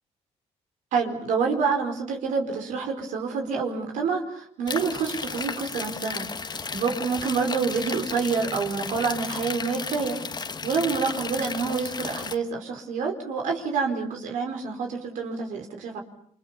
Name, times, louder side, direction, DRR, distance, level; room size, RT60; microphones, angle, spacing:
voice 1, 0.9-10.2 10.6-16.0, right 5 dB, 80° right, 3 dB, 4.6 m, -27 dB
sound 1, 4.7-12.3, left 5 dB, 35° left, 1.6 m, -34 dB
28.5 x 25.5 x 7.0 m, 0.65 s
cardioid pair, 85°, 13 cm